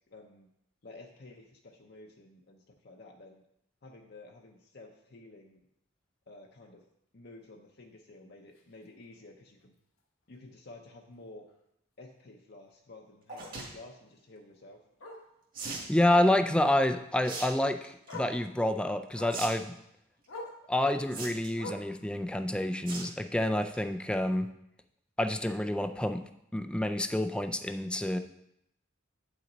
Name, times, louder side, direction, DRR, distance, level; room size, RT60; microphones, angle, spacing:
voice 1, 0.1-0.5 0.8-3.4 3.8-5.6 6.3-6.8 7.1-9.8 10.3-11.5 12.0-14.8, left 2 dB, 55° left, 1 dB, 0.8 m, -52 dB
Bark, 8.6-8.7 9.1-9.2 9.6-9.7 10.0-10.1 11.5-11.6 14.1-14.2 15.0-15.3 16.1-16.4 17.6-17.7 18.1-18.4 19.1-19.5 20.3-20.6 21.6-22.0 23.0-23.1, left 1 dB, 75° left, 1.3 m, -43 dB
sound 1, 13.3-13.7 15.5-15.9 17.2-17.5 17.8-18.2 19.3-19.5 19.8-19.9 21.1-21.6 22.9-23.1 23.5-23.7 24.1-24.2 24.4-24.5, right 3 dB, 45° right, 1.8 m, -39 dB
voice 2, 15.9-19.7 20.7-24.5 25.2-26.2 26.5-28.2, left 1 dB, 5° left, 8 dB, 0.3 m, -28 dB
9.0 x 5.8 x 4.0 m, 0.80 s
head